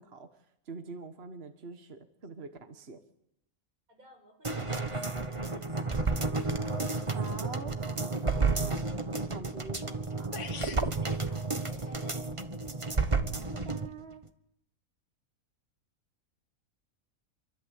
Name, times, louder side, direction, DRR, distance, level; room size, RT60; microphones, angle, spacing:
voice 1, 0.0-3.0 7.1-9.0 9.3-10.3 13.3-14.2, right 3 dB, 45° right, 7 dB, 1.7 m, -45 dB
voice 2, 3.9-5.9 11.0-12.3, equal, 85° right, 3 dB, 7.0 m, -55 dB
sound 1, 4.4-13.9 14.2-14.3, right 3 dB, 25° right, 1.3 m, -31 dB
sound 2, 10.3-10.9, left 5 dB, 60° left, 1.8 m, -41 dB
27.0 x 24.5 x 8.5 m, 0.78 s
omnidirectional pair, 1.5 m